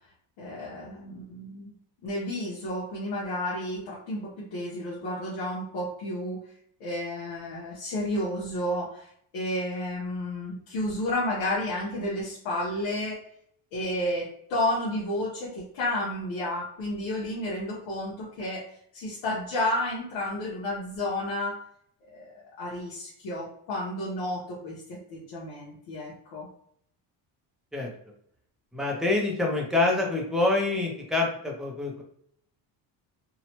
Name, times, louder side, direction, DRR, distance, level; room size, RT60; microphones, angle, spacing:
voice 1, 0.4-1.8 2.0-6.4 6.8-13.2 13.7-18.7 18.9-21.6 22.1-26.5, left 1 dB, 85° left, -6 dB, 0.9 m, -31 dB
voice 2, 28.7-32.0, left 2 dB, ahead, -1 dB, 0.3 m, -26 dB
2.8 x 2.1 x 2.8 m, 0.67 s
cardioid pair, 145°, 47 cm